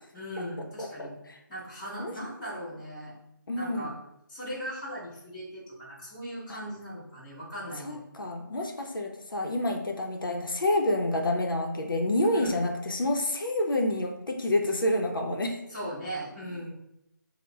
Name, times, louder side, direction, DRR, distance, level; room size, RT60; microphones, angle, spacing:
voice 1, 0.1-1.1 1.5-3.1 3.5-4.0 4.3-8.1 12.3-12.6 15.7-16.7, equal, 10° left, -12 dB, 1.1 m, -38 dB
voice 2, 3.5-3.9 6.5-6.6 7.8-15.6, left 1 dB, 80° left, 1 dB, 0.6 m, -28 dB
5.2 x 2.1 x 2.3 m, 0.83 s
figure-of-eight pair, 165°, 11 cm